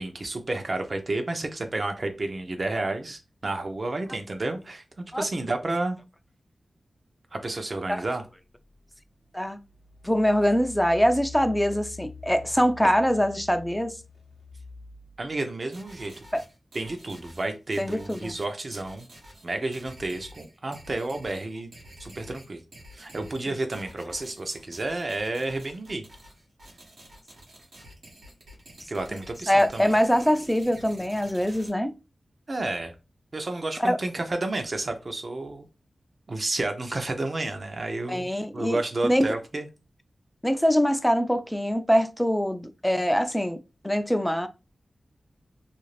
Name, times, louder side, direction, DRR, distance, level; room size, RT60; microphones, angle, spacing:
voice 1, 0.0-4.8 5.1-6.0 7.3-8.2 15.2-16.2 16.7-19.1 19.4-21.7 22.0-22.6 22.9-26.0 28.9-29.9 32.5-32.9 33.3-35.7 36.3-39.7, right 2 dB, 50° right, 0.6 m, -31 dB
Engine, 8.7-8.8 9.4-15.3, left 4 dB, 70° left, 0.6 m, -45 dB
voice 2, 10.0-14.0 16.3-16.4 17.8-18.3 29.5-31.9 33.8-34.0 38.1-39.3 40.4-44.5, equal, 5° left, 0.4 m, -23 dB
sound 1, 15.7-31.7, right 1 dB, 85° right, 1.0 m, -49 dB
2.5 x 2.4 x 3.2 m
cardioid pair, 60°, 0 cm